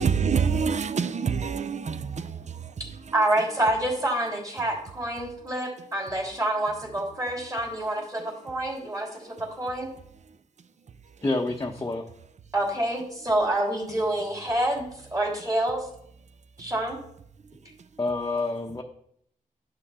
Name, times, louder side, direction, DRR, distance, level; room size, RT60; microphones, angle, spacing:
voice 1, 0.0-3.1 9.1-9.4 10.3-10.4, right 6 dB, 55° right, 0.6 m, -27 dB
voice 2, 3.1-9.9 12.5-14.8 15.1-15.9 16.6-17.0, right 1 dB, 25° right, 3.2 m, -27 dB
voice 3, 11.2-12.1 18.0-18.8, left 2 dB, 25° left, 0.8 m, -28 dB
11.5 x 5.8 x 4.2 m
wide cardioid pair, 90°, 14 cm